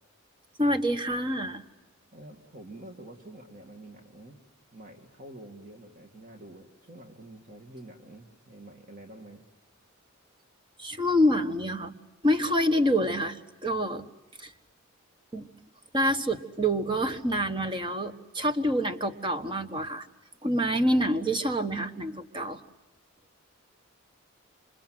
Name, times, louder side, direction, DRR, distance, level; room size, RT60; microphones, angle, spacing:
voice 1, 0.6-1.6 10.8-11.9 12.2-14.1 14.4-14.5 15.3-15.5 15.9-20.1 20.4-22.6, equal, 20° right, 8 dB, 1.3 m, -27 dB
voice 2, 2.1-4.4 4.7-9.4 20.4-20.8, right 1 dB, 40° right, 3 dB, 2.2 m, -47 dB
28.0 x 26.5 x 7.7 m, 1.1 s
head